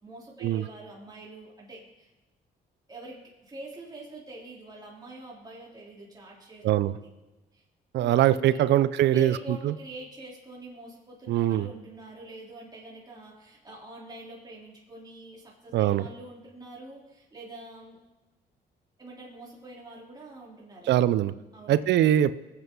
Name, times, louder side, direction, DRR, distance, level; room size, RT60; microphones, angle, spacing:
voice 1, 0.0-2.1 2.9-6.6 6.9-7.1 7.5-7.6 7.9-8.7 9.1-18.0 19.0-21.0 21.5-21.9, right 2 dB, 20° right, -4 dB, 3.2 m, -45 dB
voice 2, 6.6-7.0 7.9-9.7 11.3-11.7 15.7-16.0 20.9-21.3 21.7-22.3, right 12 dB, 75° right, 16 dB, 0.5 m, -22 dB
20.0 x 8.1 x 3.8 m, 1.1 s
cardioid pair, 90°, 18 cm